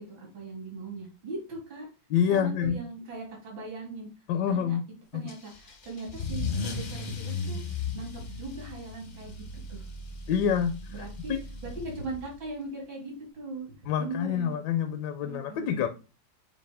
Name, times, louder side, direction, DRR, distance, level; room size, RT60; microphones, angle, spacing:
voice 1, 0.0-1.9 2.3-4.1 4.5-4.8 5.1-9.4 9.7-9.8 10.9-11.3 11.6-13.7 14.0-14.5 15.2-15.9, right 2 dB, 80° right, -1 dB, 3.0 m, -39 dB
voice 2, 2.1-2.8 4.3-4.9 5.1-5.2 10.3-11.4 13.9-15.9, left 8 dB, 70° left, 8 dB, 1.1 m, -27 dB
Car / Engine starting / Accelerating revving vroom, 5.3-12.4, left 4 dB, 50° left, 0.6 m, -36 dB
7.9 x 2.7 x 4.8 m, 0.32 s
omnidirectional pair, 2.1 m